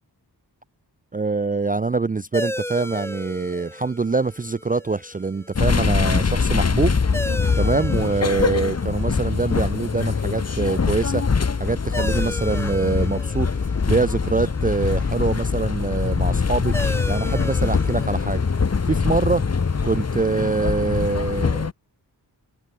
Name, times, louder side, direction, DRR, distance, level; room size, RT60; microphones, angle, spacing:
voice 1, 1.1-7.0 7.6-11.2 11.6-13.5 13.9-16.8 17.1-18.4 18.8-19.4 19.8-21.7, right 3 dB, 20° right, 0.4 m, -24 dB
sound 1, 2.3-21.5, left 1 dB, 5° left, 5.0 m, -37 dB
sound 2, 5.5-21.7, left 5 dB, 40° left, 1.1 m, -23 dB
open air
wide cardioid pair, 90°, 40 cm